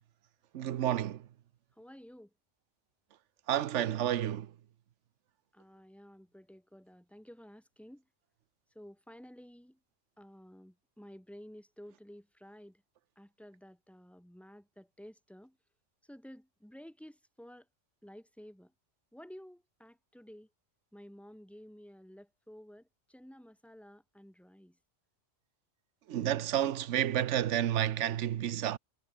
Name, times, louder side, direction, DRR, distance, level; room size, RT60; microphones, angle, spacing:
voice 1, 0.5-1.3 3.5-4.5 26.1-28.8, right 11 dB, 75° right, 1.1 m, -30 dB
voice 2, 1.8-2.3 5.5-8.0 8.7-9.8 10.2-12.8 13.2-15.6 16.0-17.7 18.0-18.7 19.1-20.5 20.9-24.8, equal, ahead, 5.9 m, -53 dB
omnidirectional pair, 1.3 m